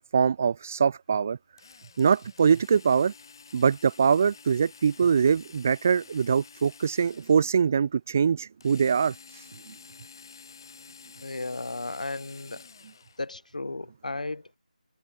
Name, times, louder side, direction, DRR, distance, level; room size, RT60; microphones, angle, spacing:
voice 1, 0.1-1.4 2.0-3.1 3.5-9.1 9.7-9.8, right 6 dB, 20° right, 0.3 m, -23 dB
Drill, 1.6-7.7 8.6-13.3, left 5 dB, 30° left, 6.3 m, -50 dB
voice 2, 11.2-12.7 13.2-14.5, left 2 dB, 65° left, 1.6 m, -34 dB
figure-of-eight pair, 170°, 4 cm